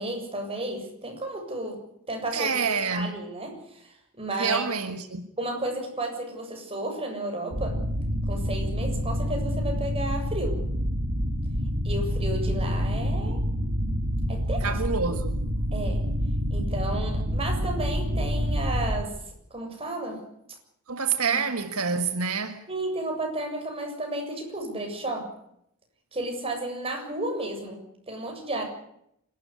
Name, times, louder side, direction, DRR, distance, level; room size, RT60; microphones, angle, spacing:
voice 1, 0.0-1.8 2.1-4.6 5.4-7.8 8.3-10.7 11.8-13.4 14.3-14.8 15.7-16.1 16.5-19.2 19.5-20.2 21.3-21.4 22.7-25.3 26.1-28.6, right 1 dB, 25° right, 7.4 m, -33 dB
voice 2, 2.3-3.2 4.4-5.3 14.6-15.4 20.9-22.6, right 5 dB, 80° right, 1.7 m, -27 dB
sound 1, 7.5-19.0, equal, 60° right, 3.3 m, -27 dB
27.0 x 13.0 x 9.9 m
head